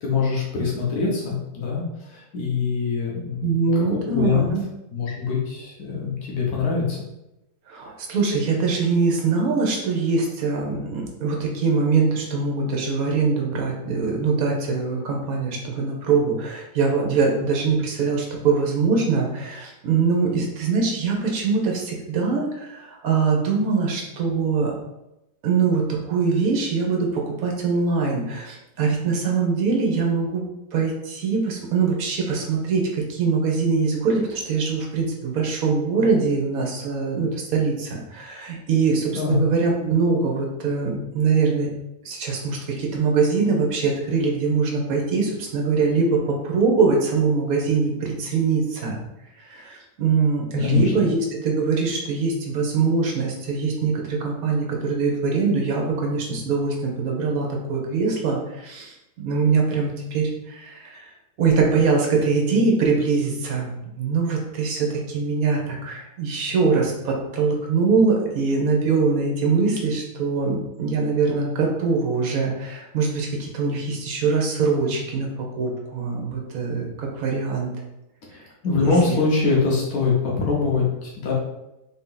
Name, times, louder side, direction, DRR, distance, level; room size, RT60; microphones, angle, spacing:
voice 1, 0.0-3.6 3.9-4.5 4.9-7.0 39.1-39.4 50.6-50.9 78.3-81.3, left 4 dB, 85° left, -3 dB, 1.4 m, -23 dB
voice 2, 3.4-4.6 7.7-24.7 25.4-41.7 42.0-49.0 49.4-61.0 61.4-77.7 78.8-79.2, right 4 dB, 75° right, 0 dB, 1.3 m, -23 dB
3.7 x 2.8 x 3.8 m, 0.91 s
omnidirectional pair, 1.5 m